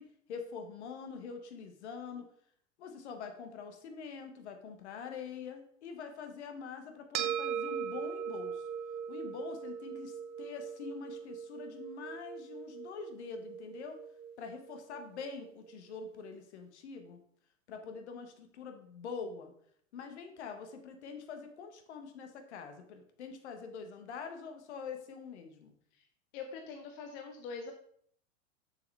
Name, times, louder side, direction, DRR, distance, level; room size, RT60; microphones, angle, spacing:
voice 1, 0.0-2.3 2.8-8.7 9.1-14.0 14.4-17.2 17.7-19.5 19.9-25.7, left 5 dB, 55° left, 6 dB, 1.2 m, -45 dB
sound 1, 7.1-15.7, right 8 dB, 25° right, 0.6 m, -40 dB
voice 2, 26.3-27.7, left 5 dB, 40° left, 4 dB, 0.9 m, -43 dB
7.0 x 6.6 x 3.3 m, 0.64 s
figure-of-eight pair, 90°, 40 cm